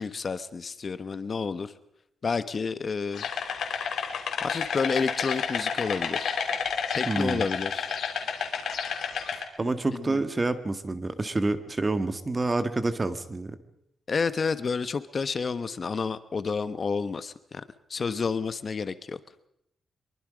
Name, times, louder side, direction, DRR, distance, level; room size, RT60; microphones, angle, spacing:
voice 1, 0.0-1.7 2.2-3.3 4.4-6.3 6.9-8.0 9.9-10.2 14.1-17.6 17.9-19.2, left 5 dB, 40° left, 13 dB, 1.1 m, -30 dB
sound 1, 3.1-9.4, left 6 dB, 80° left, 3.5 m, -30 dB
voice 2, 7.1-7.4 9.6-13.6, right 2 dB, 25° right, 10 dB, 1.6 m, -28 dB
24.0 x 23.0 x 5.1 m, 0.75 s
cardioid pair, 110°, 0 cm